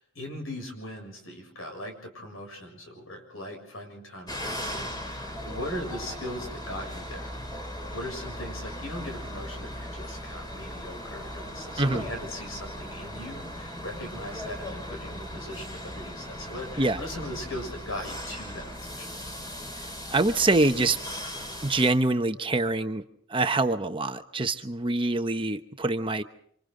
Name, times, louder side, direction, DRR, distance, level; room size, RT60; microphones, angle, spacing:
voice 1, 0.0-7.3 7.9-19.1, left 1 dB, 90° left, 3 dB, 7.2 m, -39 dB
sound 1, 4.3-21.9, equal, 20° left, 3.5 m, -38 dB
voice 2, 19.8-21.0 21.6-23.0 23.3-26.2, right 2 dB, 25° right, 7 dB, 1.0 m, -25 dB
29.0 x 26.0 x 3.9 m, 0.64 s
head